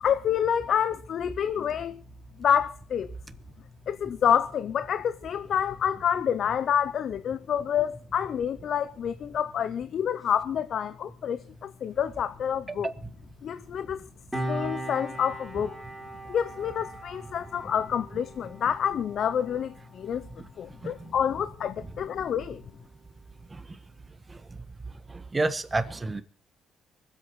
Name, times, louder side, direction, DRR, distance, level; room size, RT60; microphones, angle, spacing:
voice 1, 0.0-2.0 2.4-3.1 3.9-12.9 13.4-14.0 14.5-15.7 16.3-20.3 20.6-22.6, left 8 dB, 65° left, 0.6 m, -28 dB
voice 2, 12.7-13.1 20.4-20.5 20.8-21.1 21.8-21.9 23.5-23.8 24.3-24.6 25.1-26.2, right 2 dB, 20° right, 1.4 m, -31 dB
Piano, 14.3-21.3 21.6-21.8, right 1 dB, ahead, 3.9 m, -39 dB
24.5 x 8.2 x 4.7 m
cardioid pair, 90°, 0 cm